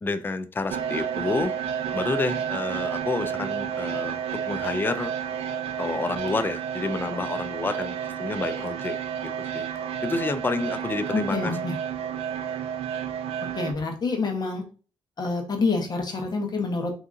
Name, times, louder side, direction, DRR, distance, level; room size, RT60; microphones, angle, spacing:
voice 1, 0.0-1.5 1.9-4.2 4.5-5.1 5.8-9.0 9.2-9.7 10.0-11.6, left 3 dB, 20° left, 10 dB, 0.3 m, -29 dB
sound 1, 0.7-13.7, right 8 dB, 75° right, 0.5 m, -31 dB
voice 2, 11.1-11.7 13.5-14.6 15.2-16.9, left 3 dB, 40° left, 2 dB, 1.0 m, -27 dB
3.5 x 2.8 x 2.5 m, 0.37 s
cardioid pair, 85°, 10 cm